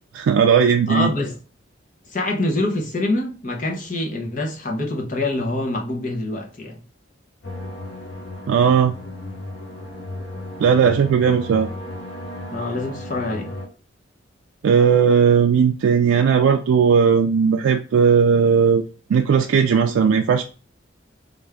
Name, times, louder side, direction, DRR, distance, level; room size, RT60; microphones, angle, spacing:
voice 1, 0.1-1.1 8.5-8.9 10.6-11.7 14.6-18.8 19.1-20.4, right 6 dB, 85° right, 0.3 m, -17 dB
voice 2, 0.9-1.4 2.1-6.8 12.5-13.5, left 2 dB, 40° left, 0.8 m, -25 dB
sound 1, 7.4-13.7, left 1 dB, 75° left, 1.0 m, -34 dB
3.3 x 2.6 x 3.4 m
head